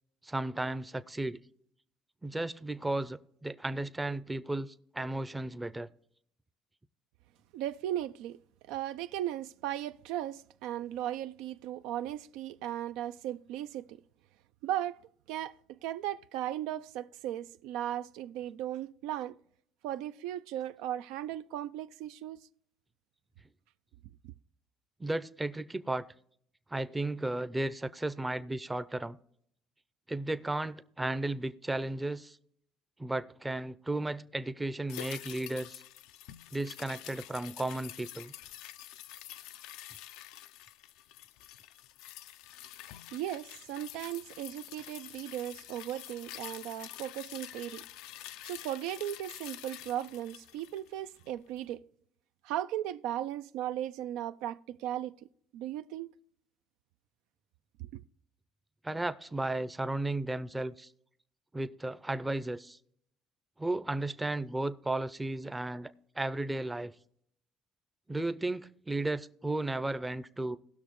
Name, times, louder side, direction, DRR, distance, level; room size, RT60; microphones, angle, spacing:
voice 1, 0.2-1.4 2.2-5.9 25.0-26.0 26.7-29.2 30.1-32.4 33.0-35.8 36.5-38.3 58.8-60.9 61.5-62.8 63.6-66.9 68.1-70.6, right 2 dB, 10° right, 0.5 m, -34 dB
voice 2, 7.5-8.4 8.7-14.0 14.6-15.0 15.3-19.4 19.8-22.5 43.1-47.8 48.4-51.8 52.4-56.1 57.8-58.0, right 12 dB, 85° right, 0.3 m, -37 dB
sound 1, 34.9-51.4 51.7-51.8, left 14 dB, 85° left, 0.4 m, -47 dB
18.5 x 6.3 x 3.1 m
cardioid pair, 105°, 0 cm